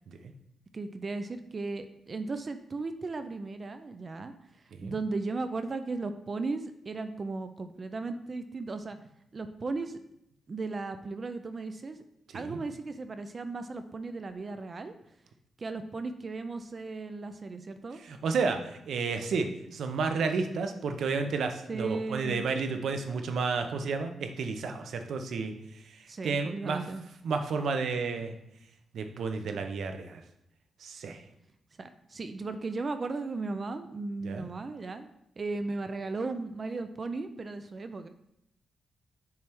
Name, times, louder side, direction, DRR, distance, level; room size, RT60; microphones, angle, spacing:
voice 1, 0.7-4.3 4.8-9.0 9.3-10.0 10.5-12.0 12.3-14.9 15.6-18.0 21.7-22.4 26.1-27.0 31.8-38.1, right 3 dB, 35° right, 9 dB, 0.4 m, -36 dB
voice 2, 18.0-26.9 27.2-28.3 28.9-30.2 30.8-31.2 34.2-34.5, right 4 dB, 75° right, 6 dB, 0.7 m, -32 dB
6.9 x 3.2 x 4.4 m, 0.78 s
wide cardioid pair, 120°, 0 cm